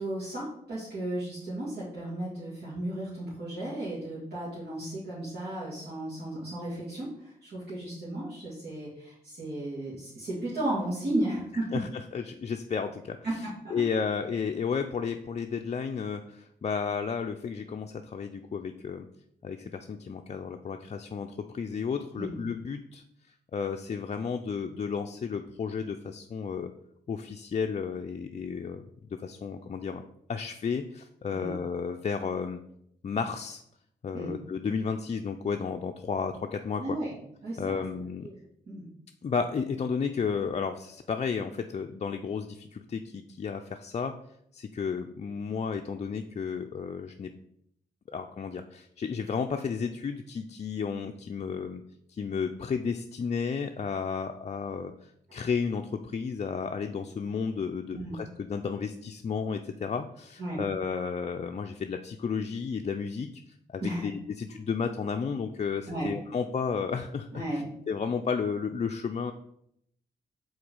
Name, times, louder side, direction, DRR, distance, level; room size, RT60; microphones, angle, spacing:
voice 1, 0.0-11.7 13.2-13.8 22.2-22.4 31.3-31.6 34.1-34.3 36.8-37.2 37.4-37.8 38.2-38.3 38.7-38.9 57.9-58.1 60.4-60.6 63.8-64.1 65.9-66.1 67.3-67.7, right 1 dB, 70° right, -10 dB, 2.4 m, -34 dB
voice 2, 11.7-13.2 13.7-19.1 19.4-23.0 23.5-26.7 27.1-28.8 29.2-30.0 30.3-32.6 33.0-33.6 34.0-37.0 37.6-38.3 39.2-44.2 44.5-47.3 48.1-51.8 52.1-63.4 63.7-67.4 67.9-69.3, left 6 dB, 40° left, 4 dB, 0.4 m, -32 dB
4.9 x 3.9 x 5.3 m, 0.73 s
cardioid pair, 65°, 17 cm